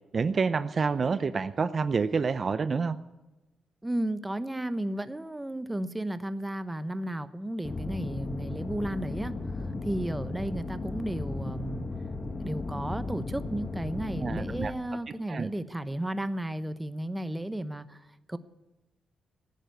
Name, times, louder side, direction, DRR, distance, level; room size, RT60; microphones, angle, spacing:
voice 1, 0.1-3.0 14.2-14.7 15.3-15.5, right 5 dB, 40° right, 12 dB, 0.6 m, -28 dB
voice 2, 3.8-11.8 12.4-18.0 18.3-18.4, right 1 dB, 10° right, 12 dB, 0.9 m, -34 dB
sound 1, 7.6-14.7, left 3 dB, 30° left, 1.5 m, -35 dB
15.0 x 10.0 x 9.4 m, 1.0 s
cardioid pair, 90°, 0 cm